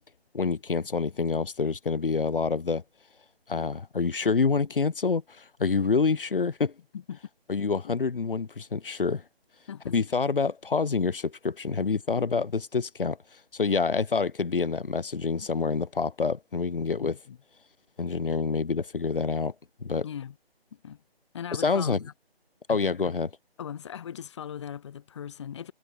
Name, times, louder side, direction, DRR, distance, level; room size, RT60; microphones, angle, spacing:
voice 1, 0.3-2.8 3.5-6.7 7.5-9.2 9.9-13.2 13.5-17.1 18.0-19.5 19.8-20.1 21.6-22.0 22.7-23.3, left 4 dB, 60° left, 2.4 m, -27 dB
voice 2, 17.0-17.4 20.0-20.4 20.7-21.0 21.3-22.1 22.7-22.8 23.0-23.1 23.6-25.7, left 9 dB, 30° left, 1.9 m, -39 dB
figure-of-eight pair, 160°, 31 cm